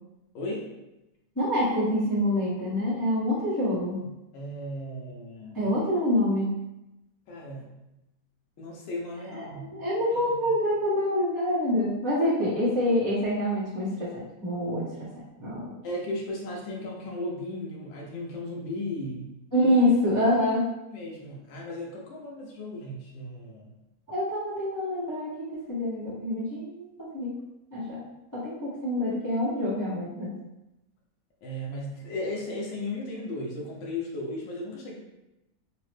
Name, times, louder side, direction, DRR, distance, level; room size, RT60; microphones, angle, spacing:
voice 1, 0.3-0.7 4.0-5.6 7.3-7.7 8.6-9.7 10.4-10.5 15.8-19.3 20.9-23.7 31.4-35.0, left 1 dB, 80° left, -3 dB, 1.5 m, -36 dB
voice 2, 1.4-4.0 5.5-6.5 9.3-15.7 19.5-20.7 24.1-27.3 27.7-28.0 28.3-30.3, left 1 dB, 20° left, -10 dB, 0.5 m, -26 dB
3.8 x 2.0 x 3.2 m, 0.93 s
omnidirectional pair, 2.1 m